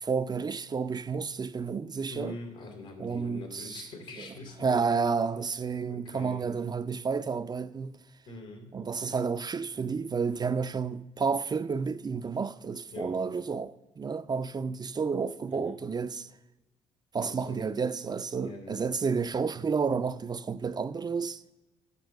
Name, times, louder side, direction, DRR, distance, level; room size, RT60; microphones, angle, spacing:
voice 1, 0.0-2.3 3.0-3.9 4.2-4.3 4.6-7.9 8.7-16.3 17.1-21.4, right 5 dB, 30° right, 0.4 m, -31 dB
voice 2, 2.1-4.8 5.9-6.5 8.3-8.8 12.9-13.2 15.5-15.8 17.2-17.6 18.4-18.9, left 2 dB, 85° left, 2.6 m, -43 dB
8.2 x 6.0 x 8.0 m
hypercardioid pair, 50°, 14 cm